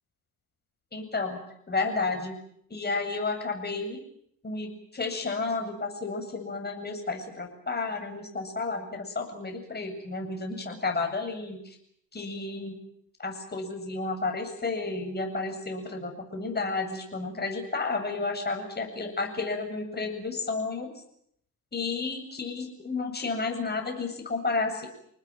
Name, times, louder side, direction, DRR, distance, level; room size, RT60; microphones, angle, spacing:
voice 1, 0.9-2.4 2.7-4.0 4.4-11.7 12.1-12.8 13.2-20.9 21.7-24.9, left 3 dB, 20° left, 3 dB, 8.0 m, -32 dB
27.0 x 19.5 x 9.2 m, 0.71 s
hypercardioid pair, 65°, 47 cm